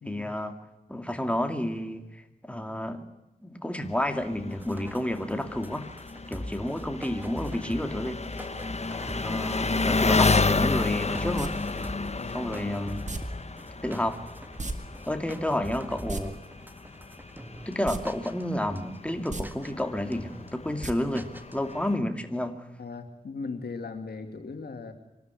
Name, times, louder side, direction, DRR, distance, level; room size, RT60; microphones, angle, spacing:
voice 1, 0.0-0.5 0.9-3.0 3.4-5.9 6.3-8.2 9.2-11.6 12.3-13.0 13.8-14.2 15.1-16.4 17.6-22.6, left 1 dB, 5° left, 6 dB, 2.4 m, -30 dB
Engine, 3.8-22.0, left 3 dB, 40° left, 1.3 m, -31 dB
sound 1, 4.5-17.8 18.0-18.4 18.7-19.8 20.1-20.5 20.8-20.9 21.2-21.8, equal, 10° right, 1.6 m, -43 dB
sound 2, 11.4-11.5 13.1-13.2 14.6-14.8 15.0-15.1 15.9-16.2 17.8-18.0 18.4-18.5 19.2-19.4 20.8-20.9 21.3-21.4, right 3 dB, 50° right, 2.2 m, -33 dB
voice 2, 12.1-12.5 22.8-24.9, left 4 dB, 80° left, 5 dB, 2.3 m, -38 dB
24.5 x 12.5 x 9.8 m, 0.98 s
cardioid pair, 40°, 16 cm